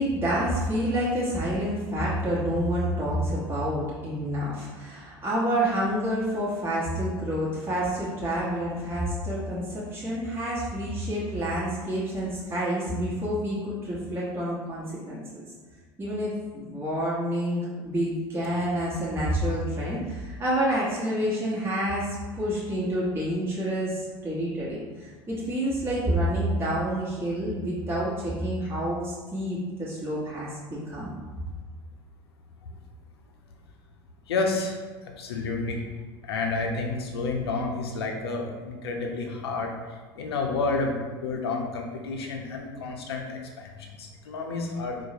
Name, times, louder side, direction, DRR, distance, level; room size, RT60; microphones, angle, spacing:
voice 1, 0.0-15.4 16.0-31.1, equal, 20° right, -8 dB, 1.0 m, -28 dB
voice 2, 34.3-35.8 36.2-39.7 40.2-45.1, left 3 dB, 75° left, 2 dB, 0.5 m, -30 dB
4.6 x 2.0 x 2.8 m, 1.3 s
figure-of-eight pair, 75°, 13 cm